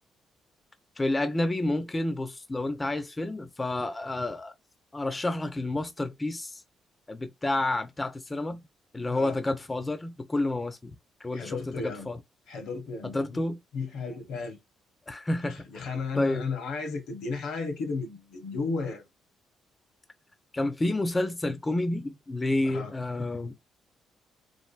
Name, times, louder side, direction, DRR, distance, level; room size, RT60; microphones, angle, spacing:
voice 1, 1.0-4.5 4.9-6.6 7.1-8.6 8.9-11.0 11.2-12.2 13.1-13.6 15.1-15.8 16.1-16.4 20.5-23.6, left 2 dB, 20° left, 0.4 m, -29 dB
voice 2, 9.1-9.4 11.3-12.1 12.5-13.4 13.7-14.6 15.4-19.0 22.6-22.9, left 4 dB, 85° left, 0.9 m, -34 dB
3.1 x 2.5 x 2.4 m
cardioid pair, 90°, 0 cm